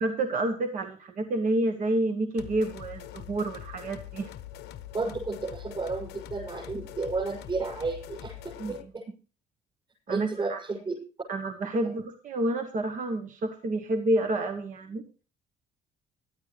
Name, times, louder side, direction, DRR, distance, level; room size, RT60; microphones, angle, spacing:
voice 1, 0.0-4.3 8.6-8.7 10.1-10.6 11.3-15.0, right 2 dB, 50° right, 6 dB, 1.3 m, -29 dB
sound 1, 2.4-8.9, left 12 dB, 85° left, 0.9 m, -43 dB
voice 2, 4.9-9.0 10.1-10.9 11.7-11.9, right 3 dB, 30° right, -4 dB, 7.5 m, -32 dB
18.5 x 12.5 x 3.3 m, 0.35 s
cardioid pair, 110°, 17 cm